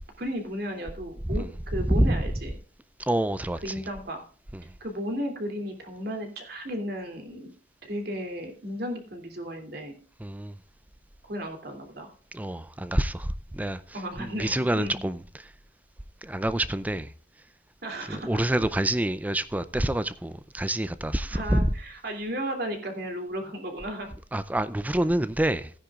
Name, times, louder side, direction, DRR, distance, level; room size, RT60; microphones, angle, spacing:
voice 1, 0.2-2.6 3.6-4.2 4.8-7.5 7.8-9.9 11.2-12.1 13.9-15.0 17.8-18.3 21.3-24.1, equal, 60° right, 2.8 m, -34 dB
voice 2, 3.0-3.7 4.5-4.6 10.2-10.6 12.3-15.5 16.2-17.1 18.1-21.7 24.3-25.8, right 1 dB, 10° right, 0.4 m, -27 dB
16.5 x 9.8 x 2.4 m
head